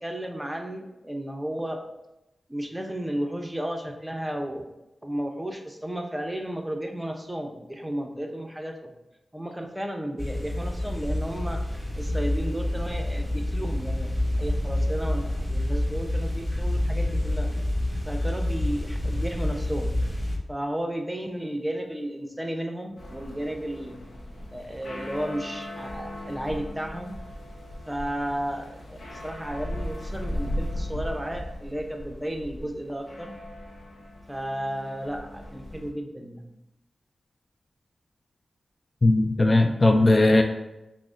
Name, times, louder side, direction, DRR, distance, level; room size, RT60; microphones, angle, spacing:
voice 1, 0.0-1.8 2.5-4.7 5.0-8.9 9.3-11.6 11.9-17.5 18.1-19.9 20.5-24.0 24.5-27.2 27.9-33.3 34.3-36.5, right 1 dB, 10° right, 3 dB, 0.6 m, -33 dB
sound 1, 10.2-20.4, left 1 dB, 15° left, 1.0 m, -28 dB
sound 2, 23.0-35.9, left 1 dB, 75° left, 0.8 m, -37 dB
voice 2, 39.0-40.4, left 2 dB, 40° left, 5 dB, 0.3 m, -18 dB
6.0 x 2.1 x 2.5 m, 0.94 s
cardioid pair, 45°, 0 cm